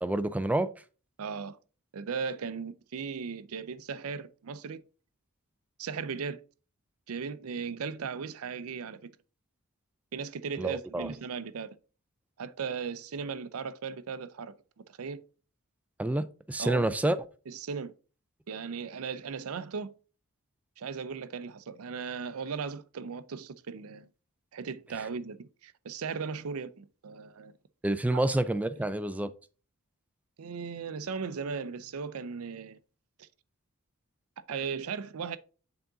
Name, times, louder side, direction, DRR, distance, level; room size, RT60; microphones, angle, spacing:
voice 1, 0.0-0.7 10.6-11.1 16.0-17.2 27.8-29.3, right 1 dB, 5° right, 0.3 m, -28 dB
voice 2, 1.2-1.6 1.9-4.8 5.8-6.4 7.1-9.1 10.1-11.7 12.4-14.6 14.9-15.2 16.6-16.9 17.5-17.9 18.5-19.9 20.8-24.1 24.5-27.5 28.1-28.4 30.4-32.8 33.2-33.3 34.5-35.4, right 5 dB, 75° right, 0.5 m, -37 dB
6.9 x 3.8 x 3.9 m
head